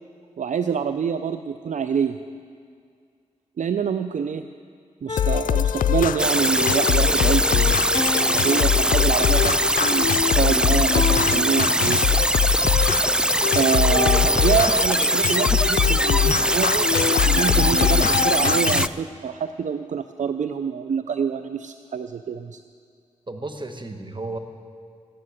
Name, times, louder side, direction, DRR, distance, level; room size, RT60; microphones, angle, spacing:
voice 1, 0.4-2.2 3.6-4.4 5.0-12.3 13.5-22.6, right 7 dB, 65° right, 10 dB, 0.5 m, -26 dB
sound 1, 5.1-6.6 7.9-9.8 10.9-12.4 13.9-15.4 16.9-19.2, left 4 dB, 40° left, 0.6 m, -33 dB
sound 2, 5.2-18.9, left 10 dB, 85° left, 0.4 m, -23 dB
sound 3, 6.2-18.9, right 1 dB, 5° right, 0.4 m, -22 dB
voice 2, 23.3-24.4, right 2 dB, 35° right, 6 dB, 1.5 m, -33 dB
13.5 x 9.9 x 8.0 m, 2.2 s
cardioid pair, 40°, 14 cm